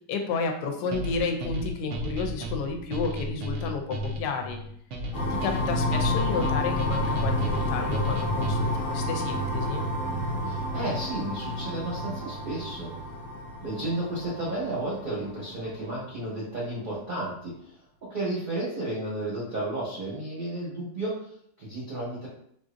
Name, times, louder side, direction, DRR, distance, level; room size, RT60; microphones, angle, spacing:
voice 1, 0.1-4.6 5.3-9.8, left 4 dB, 75° left, 4 dB, 1.1 m, -31 dB
sound 1, 0.9-8.8, equal, 85° right, 0.6 m, -33 dB
sound 2, 5.1-15.6, left 1 dB, 55° left, 0.6 m, -30 dB
voice 2, 5.6-6.2 10.4-12.9 13.6-17.8 18.0-22.3, right 2 dB, 40° right, -6 dB, 0.8 m, -33 dB
3.9 x 2.5 x 2.5 m, 0.68 s
omnidirectional pair, 1.8 m